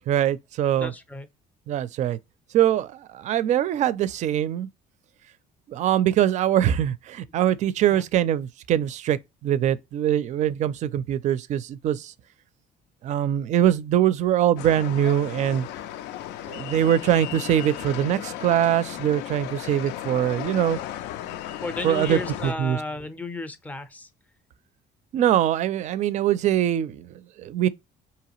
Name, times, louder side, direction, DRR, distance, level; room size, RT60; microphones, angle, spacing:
voice 1, 0.1-0.9 1.7-2.2 2.5-4.7 5.7-12.1 13.0-15.7 16.5-20.8 21.8-22.8 25.1-27.7, right 11 dB, 45° right, 0.4 m, -23 dB
voice 2, 0.8-1.3 7.9-8.1 21.6-24.1, left 2 dB, 10° left, 0.5 m, -34 dB
sound 1, 14.6-22.5, left 12 dB, 90° left, 0.5 m, -35 dB
4.8 x 2.9 x 2.9 m
cardioid pair, 170°, 17 cm